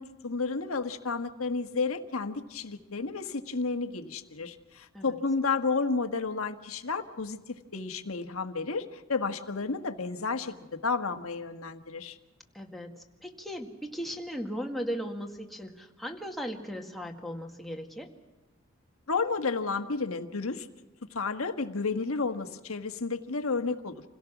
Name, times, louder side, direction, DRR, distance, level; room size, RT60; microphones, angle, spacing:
voice 1, 0.0-7.4 7.7-12.2 19.1-20.7 21.1-24.0, left 4 dB, 85° left, 7 dB, 1.5 m, -31 dB
voice 2, 12.5-12.9 13.2-18.1, equal, ahead, 2 dB, 1.9 m, -37 dB
27.5 x 17.5 x 6.1 m, 1.2 s
head